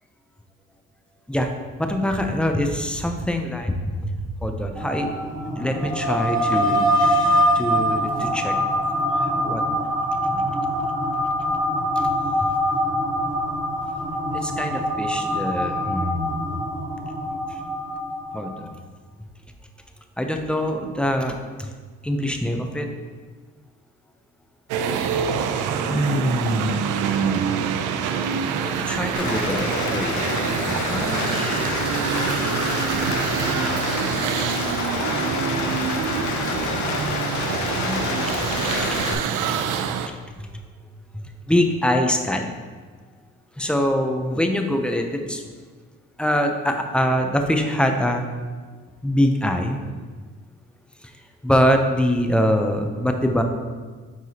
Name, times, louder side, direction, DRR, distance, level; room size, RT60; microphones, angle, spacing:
voice 1, 1.8-5.1 5.6-8.5 9.1-9.6 10.3-10.6 12.0-12.1 12.4-12.5 14.3-16.6 17.5-17.6 18.3-18.5 20.2-21.7 22.0-22.9 25.9-26.8 27.2-27.7 28.6-30.3 30.6-31.9 32.2-32.6 36.5-37.1 37.6-38.0 38.4-39.2 40.1-40.5 41.1-42.5 43.6-45.4 46.2-48.2 49.0-49.8 51.0-51.1 51.4-53.4, equal, 5° left, 4 dB, 0.6 m, -24 dB
sound 1, 4.8-18.7, equal, 10° right, 1.1 m, -24 dB
sound 2, 24.7-40.1, right 7 dB, 90° right, 0.5 m, -25 dB
Rain, 29.1-39.1, left 5 dB, 70° left, 0.7 m, -28 dB
7.8 x 4.8 x 2.9 m, 1.5 s
cardioid pair, 90°, 30 cm